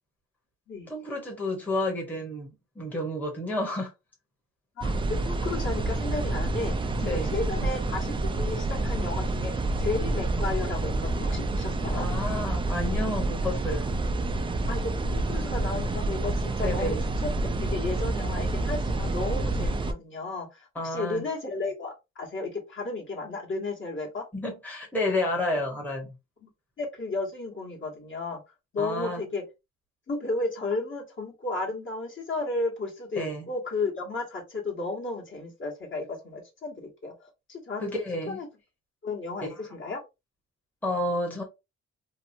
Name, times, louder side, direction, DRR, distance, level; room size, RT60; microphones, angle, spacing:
voice 1, 0.9-2.5 2.8-3.9 7.0-7.4 12.0-13.9 16.6-17.1 20.7-21.2 24.3-26.1 28.8-29.2 33.2-33.5 37.8-38.4 39.4-39.5 40.8-41.4, left 1 dB, 5° left, 0.9 m, -30 dB
voice 2, 4.8-6.7 7.0-12.1 14.7-17.3 17.7-24.2 26.4-26.5 26.8-28.4 28.7-29.4 30.1-37.1 37.5-37.8 38.3-38.5 39.0-40.0, left 3 dB, 40° left, 1.1 m, -33 dB
sound 1, 4.8-19.9, right 2 dB, 20° right, 0.3 m, -28 dB
2.9 x 2.1 x 2.5 m
cardioid pair, 90°, 30 cm